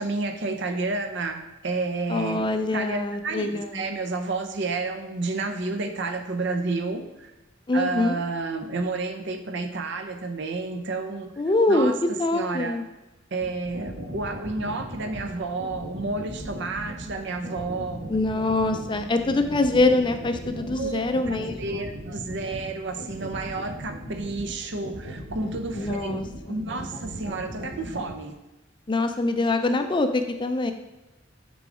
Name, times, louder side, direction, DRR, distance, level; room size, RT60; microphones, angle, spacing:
voice 1, 0.0-2.5 2.7-7.3 7.7-11.3 11.7-11.9 12.3-12.8 13.3-18.1 20.8-26.2 26.5-28.4, right 3 dB, 65° right, 7 dB, 0.7 m, -30 dB
voice 2, 2.1-3.9 7.7-8.2 11.4-11.9 12.2-12.9 18.1-21.9 25.7-26.6 28.9-30.7, left 2 dB, 25° left, 8 dB, 0.4 m, -24 dB
sound 1, 13.4-28.1, right 1 dB, 90° right, 1.3 m, -37 dB
6.8 x 3.8 x 4.9 m, 1.1 s
head